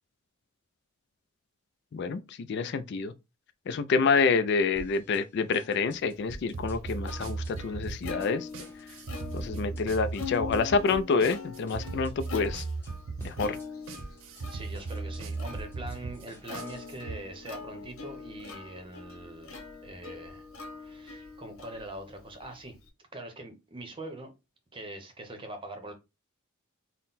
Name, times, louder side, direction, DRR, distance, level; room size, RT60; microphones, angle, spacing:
voice 1, 1.9-3.1 3.7-8.5 9.3-12.6 13.2-13.6, left 4 dB, 55° left, 0.3 m, -27 dB
sound 1, 4.8-5.2 5.5-6.8 7.1-7.5 7.8-8.3 8.6-9.8 10.1-10.6 10.9-11.4 11.7-12.9 13.2-13.7 14.0-17.0, right 1 dB, 10° left, 0.9 m, -48 dB
Plucked string instrument, 6.1-22.9, left 5 dB, 80° left, 1.1 m, -44 dB
sound 2, 6.5-17.2, right 3 dB, 60° right, 0.5 m, -37 dB
voice 2, 14.4-20.5 20.8-22.7 23.1-24.3 24.7-25.9, right 1 dB, 25° right, 0.8 m, -43 dB
3.9 x 2.1 x 4.0 m
head